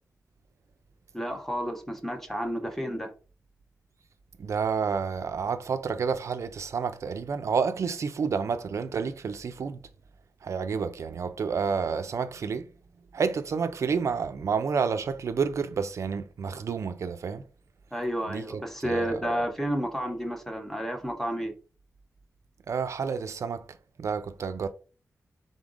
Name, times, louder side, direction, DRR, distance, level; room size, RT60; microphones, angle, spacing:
voice 1, 1.1-3.1 17.9-21.6, equal, 5° left, 0.6 m, -31 dB
voice 2, 4.4-9.8 10.4-12.7 13.1-17.4 18.3-19.4 22.7-24.7, right 5 dB, 60° right, 0.4 m, -30 dB
5.0 x 3.8 x 2.5 m
wide cardioid pair, 180°, 6 cm